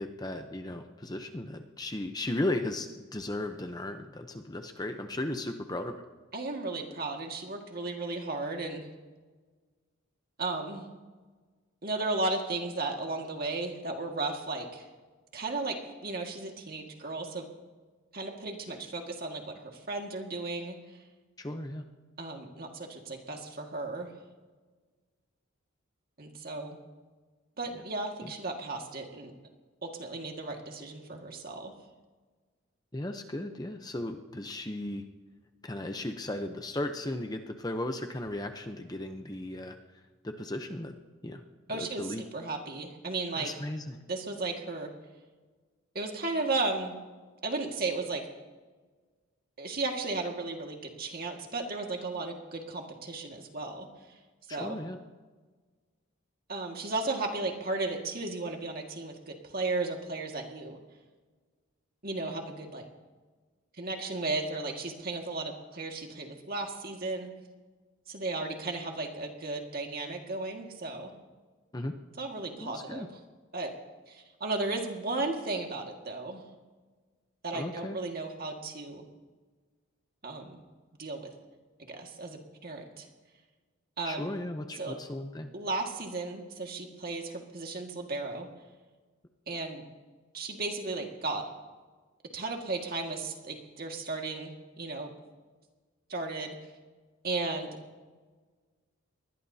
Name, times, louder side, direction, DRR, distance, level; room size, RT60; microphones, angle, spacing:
voice 1, 0.0-6.0 21.4-21.8 27.7-27.8 28.2-28.3 32.9-35.0 35.6-39.8 40.2-40.9 41.2-41.4 41.7-42.2 43.4-44.0 54.5-55.0 71.7-71.9 72.6-73.1 77.5-78.0 84.1-85.5, left 1 dB, 20° left, 6 dB, 0.7 m, -36 dB
voice 2, 6.3-8.9 10.4-10.9 11.8-14.9 15.3-17.5 18.1-20.8 22.2-24.1 26.2-26.8 27.6-29.3 29.8-31.7 41.7-43.5 44.1-44.9 46.0-46.9 47.4-48.2 49.6-53.9 54.5-54.8 56.5-60.8 62.0-62.9 63.8-67.3 68.1-71.1 72.2-73.1 73.5-73.7 74.1-76.4 77.4-79.1 80.2-80.6 81.0-81.3 81.9-83.1 84.0-84.4 84.8-85.0 85.5-88.5 89.5-89.8 90.3-91.5 92.3-95.1 96.1-96.6 97.2-97.8, right 3 dB, 45° right, 2 dB, 1.8 m, -35 dB
24.0 x 20.0 x 2.8 m, 1.4 s
head